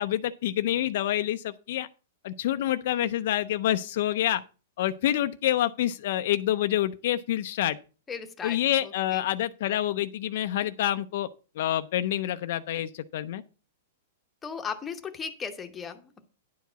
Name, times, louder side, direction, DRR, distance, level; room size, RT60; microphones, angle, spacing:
voice 1, 0.0-1.9 2.2-4.4 4.8-7.8 8.4-11.3 11.6-13.4, left 12 dB, 55° left, 0.5 m, -27 dB
voice 2, 8.1-9.2 14.4-16.3, left 6 dB, 10° left, 0.9 m, -37 dB
10.5 x 4.7 x 6.8 m
supercardioid pair, 160°, 0 cm